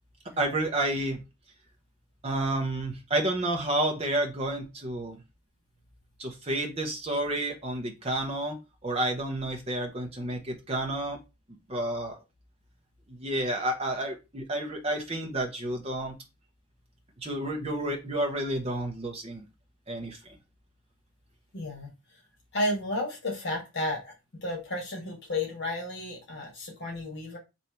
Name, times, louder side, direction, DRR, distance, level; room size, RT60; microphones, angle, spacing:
voice 1, 0.4-1.2 2.2-5.2 6.2-11.2 11.7-12.2 13.1-16.2 17.2-19.4 19.9-20.4, right 1 dB, 25° right, 2 dB, 0.8 m, -30 dB
voice 2, 21.5-21.9 22.5-24.1 24.4-27.4, left 1 dB, 50° left, -1 dB, 1.4 m, -32 dB
3.3 x 2.7 x 4.3 m, 0.26 s
head